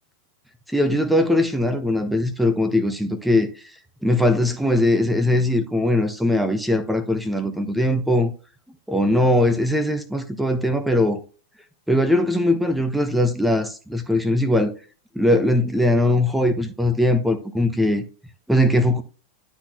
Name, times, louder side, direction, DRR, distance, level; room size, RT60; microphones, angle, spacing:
voice 1, 0.7-3.5 4.0-8.3 8.9-11.2 11.9-14.7 15.1-18.0 18.5-19.0, left 1 dB, ahead, 1.1 m, -20 dB
12.0 x 4.3 x 3.0 m
figure-of-eight pair, 90°, 0 cm